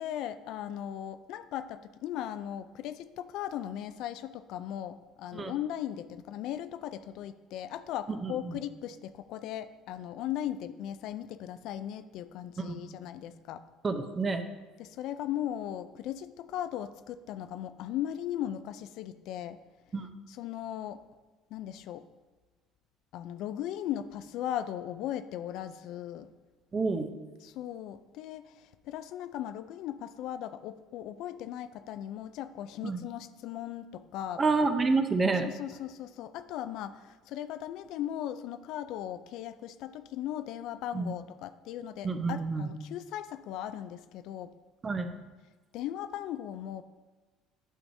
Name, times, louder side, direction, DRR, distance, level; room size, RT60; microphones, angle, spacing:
voice 1, 0.0-13.6 14.8-19.6 20.3-21.0 21.5-22.0 23.1-26.3 27.4-34.4 35.4-44.5 45.7-46.8, left 11 dB, 70° left, 12 dB, 0.3 m, -38 dB
voice 2, 8.1-8.6 12.6-12.8 13.8-14.4 19.9-20.1 26.7-27.1 32.8-33.0 34.4-35.5 40.9-41.1 42.0-42.7 44.8-45.1, right 3 dB, 25° right, 8 dB, 0.6 m, -29 dB
9.0 x 6.1 x 2.7 m, 1.3 s
cardioid pair, 105°, 0 cm